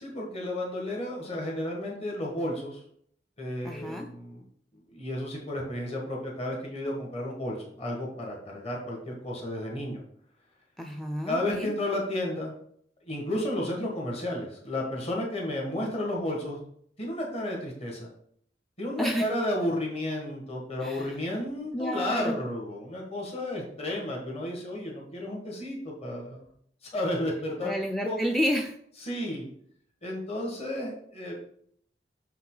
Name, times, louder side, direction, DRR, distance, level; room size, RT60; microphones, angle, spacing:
voice 1, 0.0-2.8 3.4-4.4 4.9-10.0 11.3-12.5 13.0-16.6 17.0-18.1 18.8-26.4 26.9-28.2 29.0-29.5 30.0-31.3, left 1 dB, 35° left, -2 dB, 1.6 m, -32 dB
voice 2, 3.6-4.1 10.8-11.7 19.0-19.3 20.8-21.1 21.7-22.4 27.6-28.7, equal, ahead, 4 dB, 0.4 m, -30 dB
6.2 x 5.6 x 3.8 m, 0.64 s
head